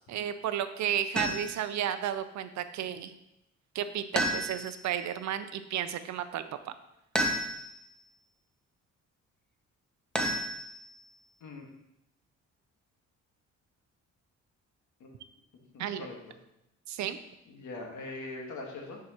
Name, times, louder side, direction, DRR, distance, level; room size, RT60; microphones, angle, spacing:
voice 1, 0.1-3.1 3.7-6.7 15.8-16.1 16.9-17.2, right 10 dB, 70° right, 11 dB, 0.6 m, -33 dB
sound 1, 1.2-1.7 4.2-4.9 7.1-7.9 10.1-11.0, equal, 5° left, 0.9 m, -31 dB
voice 2, 15.5-16.2 17.5-19.0, left 2 dB, 75° left, 0 dB, 1.6 m, -42 dB
10.0 x 4.7 x 3.0 m, 0.86 s
cardioid pair, 90°, 30 cm